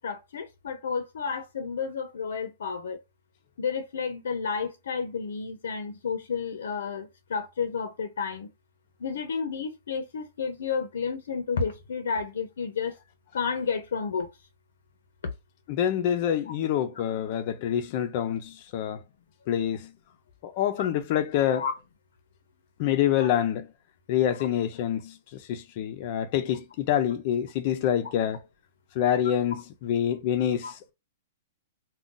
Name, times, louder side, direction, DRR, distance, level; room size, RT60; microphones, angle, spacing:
voice 1, 0.0-3.0 3.6-8.5 9.0-12.9 13.3-14.3 20.8-20.9 21.5-21.7 30.6-30.7, left 5 dB, 90° left, 0.6 m, -31 dB
voice 2, 15.7-19.0 19.5-19.9 20.4-21.7 22.8-23.7 24.1-28.4 29.0-30.9, left 10 dB, 40° left, 0.4 m, -26 dB
2.5 x 2.2 x 3.7 m
hypercardioid pair, 165°, 0 cm